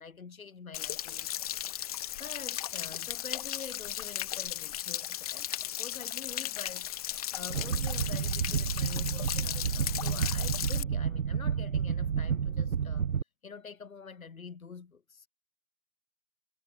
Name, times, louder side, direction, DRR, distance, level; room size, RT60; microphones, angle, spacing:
voice 1, 0.0-13.1 13.4-15.3, left 5 dB, 80° left, 6.3 m, -47 dB
Stream / Splash splatter / Trickle dribble, 0.7-10.8, left 12 dB, 25° left, 1.1 m, -36 dB
sound 1, 7.5-13.2, right 7 dB, 75° right, 1.7 m, -30 dB
hypercardioid pair, 160°, 41 cm